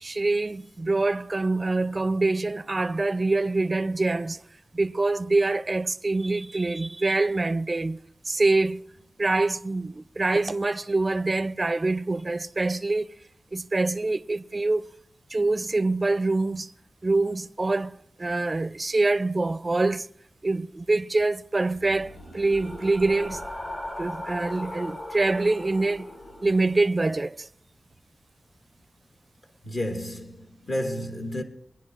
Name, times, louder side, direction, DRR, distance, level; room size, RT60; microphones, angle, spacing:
voice 1, 0.0-4.4 4.7-8.0 8.3-8.8 9.2-13.1 13.5-14.9 15.3-16.7 17.0-20.1 20.4-23.4 24.0-26.1 26.4-27.5, right 2 dB, 35° right, 0.4 m, -25 dB
sound 1, 21.7-26.8, left 1 dB, 40° left, 4.3 m, -38 dB
voice 2, 29.6-31.4, left 1 dB, 55° left, 1.1 m, -31 dB
24.0 x 10.0 x 2.4 m
wide cardioid pair, 85°, 0 cm